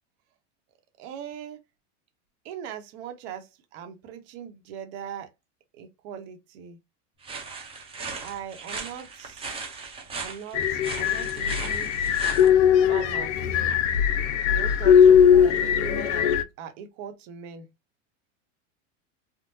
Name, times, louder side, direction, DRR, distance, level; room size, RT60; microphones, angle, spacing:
voice 1, 1.0-1.6 2.4-5.3 5.8-6.8 8.1-9.6 10.2-12.3 12.9-13.4 14.4-17.7, right 8 dB, 55° right, 1.0 m, -40 dB
sound 1, 7.2-12.5, right 4 dB, 15° right, 0.8 m, -38 dB
sound 2, 10.5-16.4, left 8 dB, 70° left, 0.6 m, -20 dB
3.6 x 2.1 x 2.6 m
supercardioid pair, 135°, 38 cm